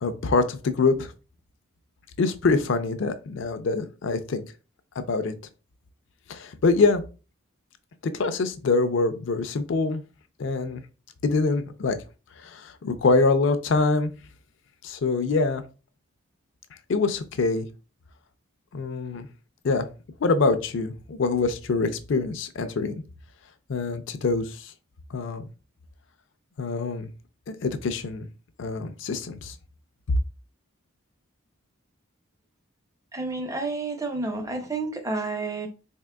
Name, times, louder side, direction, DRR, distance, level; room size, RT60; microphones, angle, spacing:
voice 1, 0.0-1.1 2.2-4.4 5.0-5.3 6.3-7.0 8.1-10.0 10.4-10.8 11.2-12.0 12.4-14.1 14.8-15.6 16.9-17.7 18.7-19.3 19.6-19.9 20.2-23.0 23.7-24.7 25.1-25.5 26.6-27.1 27.6-28.3 28.6-29.5, left 3 dB, 60° left, 0.4 m, -24 dB
voice 2, 33.1-35.7, right 3 dB, 15° right, 0.5 m, -30 dB
4.1 x 3.6 x 2.2 m
head